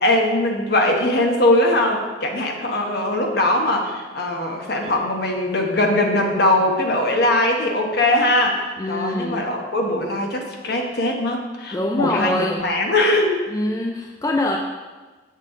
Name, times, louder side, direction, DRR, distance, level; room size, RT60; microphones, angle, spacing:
voice 1, 0.0-13.4, left 1 dB, 55° left, 2 dB, 1.1 m, -21 dB
voice 2, 8.8-9.4 11.7-12.6 13.5-14.6, left 1 dB, 15° left, 2 dB, 0.3 m, -24 dB
7.3 x 6.7 x 3.8 m, 1.3 s
head